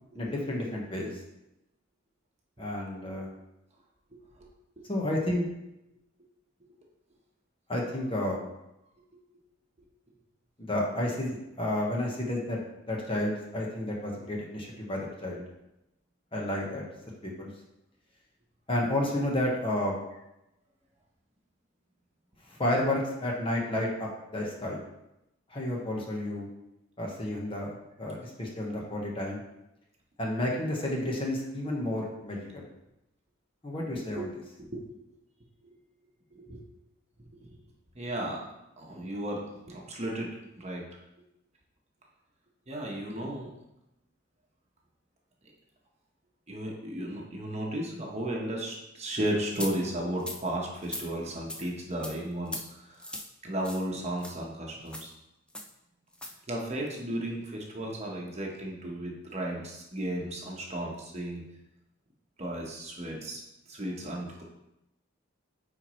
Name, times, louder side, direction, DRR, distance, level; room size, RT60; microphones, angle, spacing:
voice 1, 0.1-1.2 2.6-3.3 4.9-5.5 7.7-8.4 10.7-12.6 12.9-15.4 16.3-16.8 17.2-17.5 18.7-20.0 22.4-24.8 25.5-26.5 27.0-29.4 30.2-32.6 33.6-34.3, left 1 dB, 25° left, -2 dB, 1.2 m, -31 dB
voice 2, 37.9-38.4 38.8-40.8 42.7-43.5 46.5-53.0 53.4-55.1 56.5-61.4 62.4-63.4 63.7-64.4, right 1 dB, 35° right, -2 dB, 1.1 m, -34 dB
sound 1, 49.5-49.7 50.2-50.4 50.8-51.1 51.5-51.6 52.0-52.1 52.5-52.6 53.0-53.3 53.6-53.8 54.2-54.3 54.9-55.1 55.5-55.7 56.1-56.3, left 1 dB, 5° left, 0.5 m, -38 dB
8.8 x 4.3 x 3.1 m, 0.88 s
head